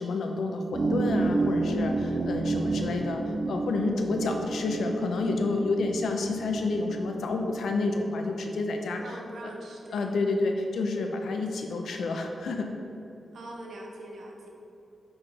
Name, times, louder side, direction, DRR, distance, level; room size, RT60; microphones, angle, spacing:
voice 1, 0.0-3.2 3.5-9.0 9.9-12.7, left 3 dB, 80° left, 3 dB, 0.7 m, -29 dB
sound 1, 0.7-7.7, right 3 dB, 30° right, 0.5 m, -30 dB
voice 2, 2.6-3.1 9.0-10.1 13.3-14.5, right 1 dB, 90° right, 0 dB, 1.0 m, -42 dB
5.7 x 4.7 x 4.9 m, 2.8 s
wide cardioid pair, 180°, 0 cm